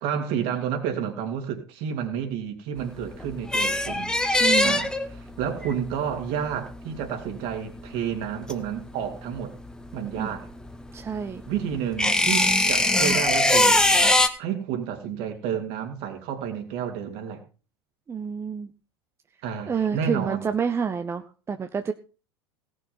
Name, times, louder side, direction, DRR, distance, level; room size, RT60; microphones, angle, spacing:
voice 1, 0.0-4.1 4.6-9.5 9.9-10.5 11.5-13.8 14.4-17.4 19.4-20.5, right 8 dB, 50° right, 5 dB, 2.9 m, -30 dB
sound 1, 2.8-9.4 9.6-14.3, left 1 dB, 5° left, 1.2 m, -22 dB
voice 2, 4.4-4.8 10.2-10.3 10.9-11.4 18.1-18.7 19.7-21.9, right 6 dB, 20° right, 8 dB, 0.8 m, -28 dB
17.5 x 6.5 x 5.6 m, 0.36 s
figure-of-eight pair, 80°, 14 cm